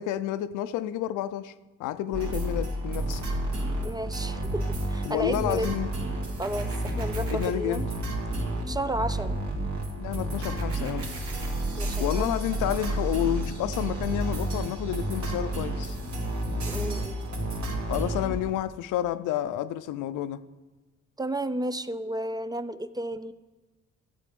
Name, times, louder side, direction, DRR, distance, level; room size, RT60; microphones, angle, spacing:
voice 1, 0.0-1.5 1.8-3.2 5.0-5.9 7.3-7.8 10.0-11.2 12.0-16.0 17.9-20.4, left 12 dB, 90° left, 0.5 m, -30 dB
sound 1, 2.1-18.5, right 1 dB, 65° right, 2.4 m, -31 dB
voice 2, 3.8-5.7 6.4-7.9 8.7-9.4 11.8-12.4 16.6-17.3 21.2-23.3, right 1 dB, 15° right, 0.4 m, -32 dB
sound 2, 6.4-7.5 10.4-11.5, right 3 dB, 50° right, 2.7 m, -45 dB
13.5 x 7.6 x 5.2 m
cardioid pair, 90°, 30 cm